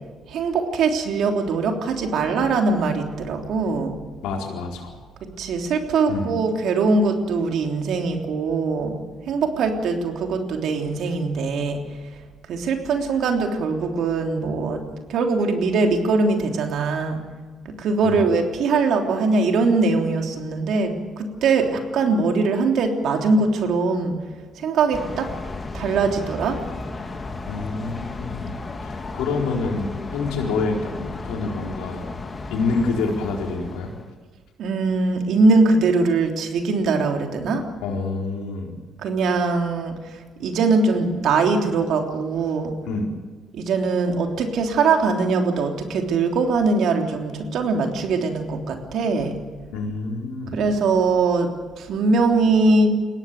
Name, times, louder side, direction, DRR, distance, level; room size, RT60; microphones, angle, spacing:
voice 1, 0.3-4.0 5.4-9.0 9.3-11.8 12.5-14.8 15.1-17.2 17.6-24.2 24.6-25.3 25.7-26.6 34.6-37.6 39.0-42.7 43.5-49.3 50.5-51.5 51.8-52.9, right 3 dB, 70° right, 3 dB, 3.3 m, -21 dB
voice 2, 4.2-5.0 6.1-6.3 18.0-18.3 27.4-28.5 28.8-32.1 32.5-33.9 37.8-38.7 42.9-43.1 49.7-50.6, left 3 dB, 80° left, 1 dB, 4.4 m, -27 dB
sound 1, 24.9-34.1, left 3 dB, 30° left, 2.7 m, -34 dB
21.5 x 17.0 x 9.3 m, 1.4 s
supercardioid pair, 65°, 0 cm